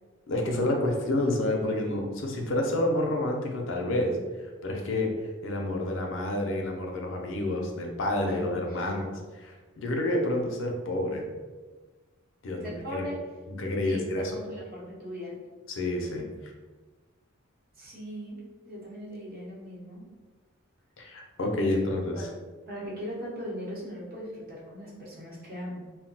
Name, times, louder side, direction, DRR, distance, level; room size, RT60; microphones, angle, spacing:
voice 1, 0.3-4.2 4.6-5.1 5.4-9.1 9.4-11.2 12.4-13.0 13.5-14.4 15.7-16.5 21.0-22.3, left 1 dB, 65° left, 1 dB, 0.5 m, -29 dB
voice 2, 8.2-9.0 12.6-13.2 13.8-15.4 17.8-18.4 18.7-20.1 22.1-22.3 22.7-25.9, equal, 45° right, -5 dB, 0.9 m, -39 dB
2.2 x 2.1 x 3.8 m, 1.3 s
head